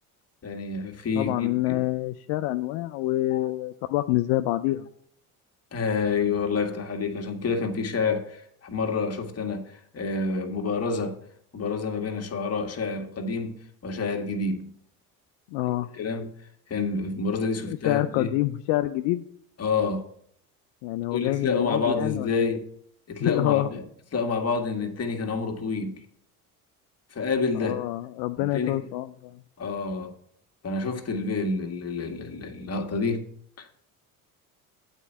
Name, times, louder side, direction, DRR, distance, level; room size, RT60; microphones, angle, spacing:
voice 1, 0.4-1.8 3.3-3.5 5.7-11.2 11.5-13.6 13.8-14.7 15.9-16.3 16.7-18.3 19.6-20.1 21.1-22.7 23.1-23.8 24.1-26.0 27.1-27.8 28.4-28.8 29.6-30.1 30.6-33.2 33.6-33.9, left 4 dB, 35° left, 1.7 m, -28 dB
voice 2, 1.2-4.9 15.5-15.9 17.7-19.2 20.8-22.6 23.2-23.7 27.6-29.4, left 16 dB, 70° left, 0.5 m, -27 dB
8.2 x 4.5 x 7.3 m
hypercardioid pair, 70°, 43 cm